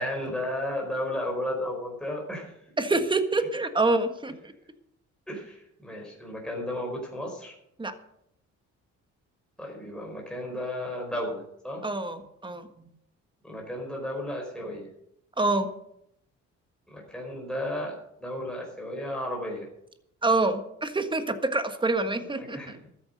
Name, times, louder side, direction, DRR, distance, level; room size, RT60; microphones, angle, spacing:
voice 1, 0.0-2.6 5.3-7.6 9.6-11.9 13.4-14.9 16.9-17.9 18.2-19.7 22.3-22.8, left 1 dB, 5° left, -1 dB, 4.8 m, -33 dB
voice 2, 2.8-4.5 7.8-7.9 11.8-12.9 15.4-15.7 20.2-22.8, right 2 dB, 15° right, 8 dB, 1.5 m, -26 dB
13.5 x 9.6 x 6.6 m, 0.77 s
cardioid pair, 90°, 30 cm